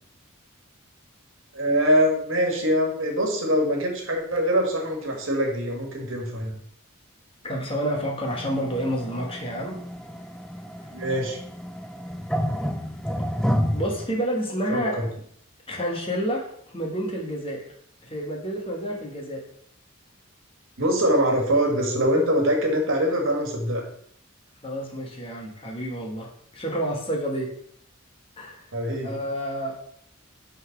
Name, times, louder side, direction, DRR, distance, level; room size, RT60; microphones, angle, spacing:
voice 1, 1.5-6.6 10.9-11.4 14.7-15.1 20.8-23.9 28.7-29.1, equal, 65° right, 1 dB, 1.6 m, -23 dB
voice 2, 7.4-9.8 13.7-15.0 15.7-17.7 18.0-19.4 24.6-27.5 28.4-28.6 29.0-29.7, equal, 25° left, 0 dB, 1.2 m, -29 dB
sound 1, 8.2-14.1, equal, 5° left, 0.4 m, -30 dB
5.3 x 3.9 x 5.8 m, 0.66 s
head